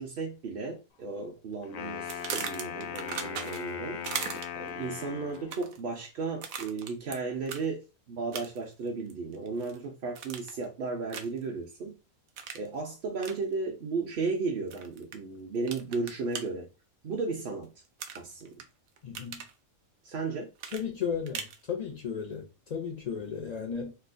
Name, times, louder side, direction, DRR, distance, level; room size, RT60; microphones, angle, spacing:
voice 1, 0.0-4.0 4.5-11.9 12.5-16.7 17.0-17.7 18.1-18.6 20.0-20.5, right 4 dB, 55° right, 0.6 m, -34 dB
Wind instrument woodwind instrument, 1.6-5.6, left 8 dB, 80° left, 1.0 m, -39 dB
sound 1, 2.1-3.7 4.0-4.7 5.3-5.8 6.4-7.2 7.5-7.6 8.3-8.7 9.1-9.8 10.2-10.6 11.1-11.4 12.4-12.7 13.2-13.4 14.7-15.2 15.7-16.4 18.0-18.6 19.0-19.5 20.6-21.6, right 7 dB, 80° right, 1.0 m, -38 dB
voice 2, 19.0-19.4 20.7-23.9, left 7 dB, 65° left, 0.4 m, -35 dB
4.4 x 2.0 x 2.5 m
omnidirectional pair, 1.4 m